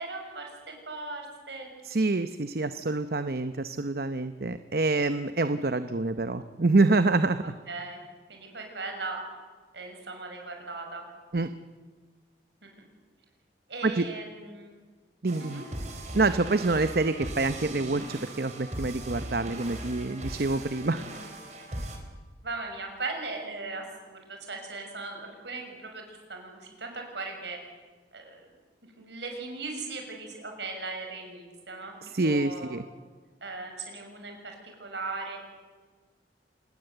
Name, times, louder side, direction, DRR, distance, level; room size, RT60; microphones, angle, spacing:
voice 1, 0.0-1.7 7.7-8.0 8.3-9.2 9.7-11.0 12.6-12.9 13.7-14.8 15.4-15.6 22.4-27.6 28.1-28.4 29.0-32.0 32.2-32.8 33.4-35.4, right 3 dB, 75° right, 3 dB, 6.3 m, -38 dB
voice 2, 1.8-7.5 11.3-11.5 13.8-14.0 15.2-15.6 16.1-21.0 32.0-32.8, right 3 dB, 55° right, 10 dB, 0.8 m, -26 dB
sound 1, 15.3-22.0, right 1 dB, 40° right, 4.1 m, -39 dB
26.5 x 20.0 x 8.0 m, 1.4 s
head